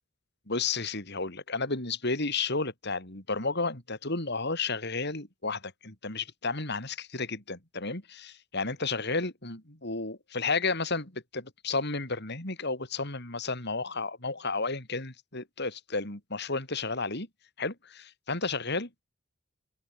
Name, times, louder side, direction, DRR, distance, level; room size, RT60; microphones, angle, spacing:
voice 1, 0.5-17.3 17.6-19.0, left 3 dB, 60° left, 6.4 m, -32 dB
open air
head